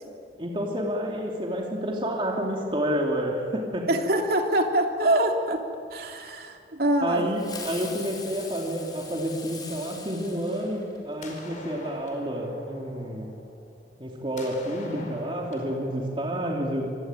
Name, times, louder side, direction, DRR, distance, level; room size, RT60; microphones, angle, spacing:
voice 1, 0.4-3.9 7.0-13.3 14.0-16.9, equal, 30° right, -1 dB, 2.9 m, -29 dB
voice 2, 3.9-5.6 5.9-7.2, right 1 dB, 55° right, 2 dB, 3.1 m, -24 dB
sound 1, 6.9-7.8 8.2-9.8 10.4-10.8 11.1-14.1 14.4-16.0, left 2 dB, 45° left, 5.0 m, -46 dB
Fireworks, 7.3-11.2, left 4 dB, 25° left, 4.9 m, -41 dB
26.5 x 23.0 x 9.1 m, 2.4 s
head